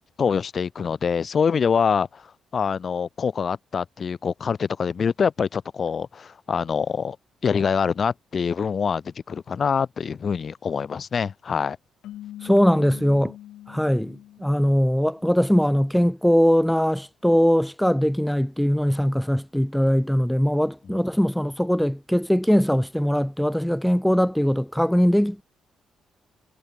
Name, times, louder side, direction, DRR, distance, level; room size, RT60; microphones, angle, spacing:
voice 1, 0.2-2.2 2.5-7.2 7.4-11.8 20.9-21.0, left 6 dB, 45° left, 3.0 m, -25 dB
sound 1, 12.0-15.4, left 13 dB, 80° left, 6.0 m, -43 dB
voice 2, 12.4-13.3 13.7-25.4, equal, ahead, 2.1 m, -21 dB
cardioid pair, 90°, 0 cm